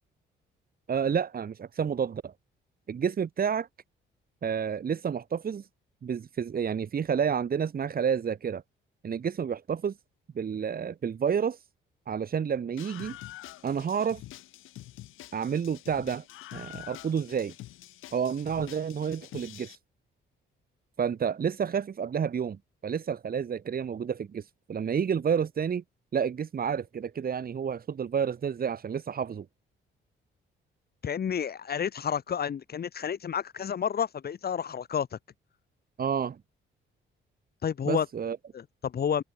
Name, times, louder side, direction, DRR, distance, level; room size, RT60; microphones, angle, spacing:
voice 1, 0.9-2.3 2.9-3.7 4.4-5.6 6.0-8.6 9.0-9.9 10.3-11.6 12.1-13.2 13.6-14.2 15.3-16.2 16.5-17.5 18.1-19.8 21.0-24.4 24.7-25.8 26.1-29.4 36.0-36.4 37.8-38.4, right 7 dB, 50° right, 3.3 m, -30 dB
Screaming, 12.8-19.7, left 15 dB, 90° left, 4.8 m, -46 dB
voice 2, 31.0-35.2 37.6-38.1 38.5-39.2, left 8 dB, 50° left, 3.6 m, -30 dB
open air
cardioid pair, 90°, 20 cm